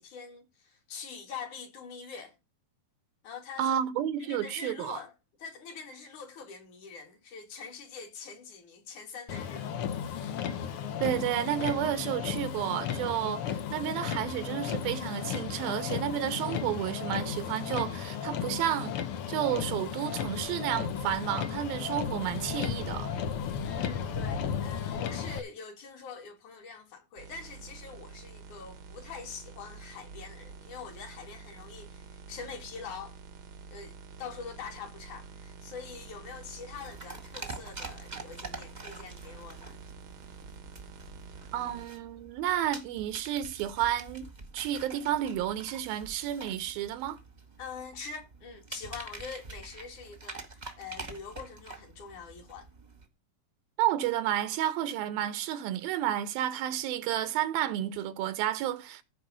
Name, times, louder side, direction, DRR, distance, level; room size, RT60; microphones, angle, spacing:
voice 1, 0.0-2.4 3.2-3.8 4.2-5.1 5.4-9.8 23.7-33.2 33.7-39.8 47.6-52.7, left 5 dB, 60° left, 3.5 m, -44 dB
voice 2, 3.6-5.0 11.0-18.9 19.3-23.2 41.5-44.3 44.5-47.2 53.8-59.0, right 11 dB, 90° right, 2.9 m, -31 dB
Motor vehicle (road), 9.3-25.4, left 8 dB, 90° left, 1.2 m, -34 dB
sound 1, 27.2-41.9, right 5 dB, 65° right, 1.3 m, -48 dB
sound 2, 36.7-53.1, right 3 dB, 25° right, 1.0 m, -46 dB
14.5 x 5.1 x 6.3 m
omnidirectional pair, 4.1 m